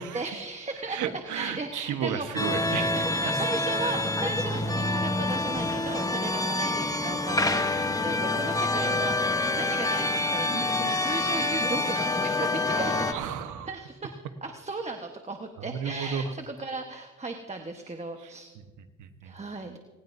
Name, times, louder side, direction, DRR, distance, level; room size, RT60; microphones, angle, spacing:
voice 1, 0.0-1.0 1.3-2.4 3.2-13.2 13.7-18.5 19.2-19.8, right 3 dB, 20° right, 4 dB, 1.2 m, -36 dB
voice 2, 0.9-3.2 12.7-13.7 15.6-16.3 18.2-19.4, right 7 dB, 80° right, 9 dB, 1.2 m, -34 dB
sound 1, 2.4-13.1, left 2 dB, 10° left, 1.0 m, -27 dB
19.0 x 18.5 x 2.7 m, 1.3 s
cardioid pair, 90°, 30 cm